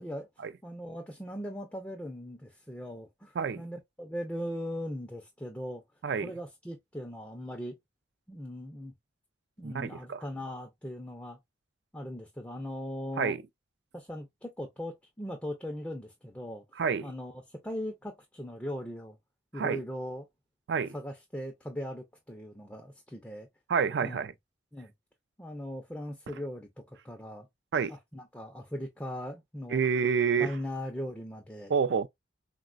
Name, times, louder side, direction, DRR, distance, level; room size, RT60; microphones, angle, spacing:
voice 1, 0.6-5.8 6.2-7.7 8.3-8.9 9.6-11.4 11.9-13.3 13.9-16.6 17.0-19.2 19.5-20.2 20.9-23.5 24.0-24.2 24.7-24.9 25.4-27.5 27.9-29.8 30.4-31.7, equal, 10° left, 0.4 m, -39 dB
voice 2, 9.6-10.2 13.2-13.4 16.8-17.1 19.5-19.8 20.7-20.9 23.7-24.3 27.7-27.9 29.7-30.5 31.7-32.1, right 6 dB, 65° right, 0.3 m, -28 dB
3.9 x 2.1 x 2.3 m
head